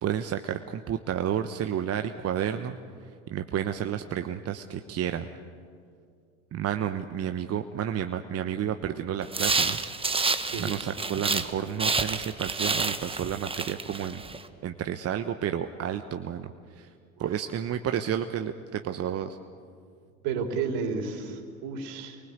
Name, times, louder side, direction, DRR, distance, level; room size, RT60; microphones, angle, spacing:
voice 1, 0.0-2.8 3.3-5.3 6.5-9.8 10.6-14.2 14.6-16.9 17.2-19.4, right 9 dB, 35° right, 8 dB, 1.1 m, -31 dB
sound 1, 9.3-11.5 11.8-14.4, right 4 dB, 15° right, 1.4 m, -29 dB
voice 2, 20.2-22.2, right 5 dB, 60° right, 4 dB, 4.0 m, -31 dB
30.0 x 23.0 x 8.3 m, 2.3 s
hypercardioid pair, 75°, 43 cm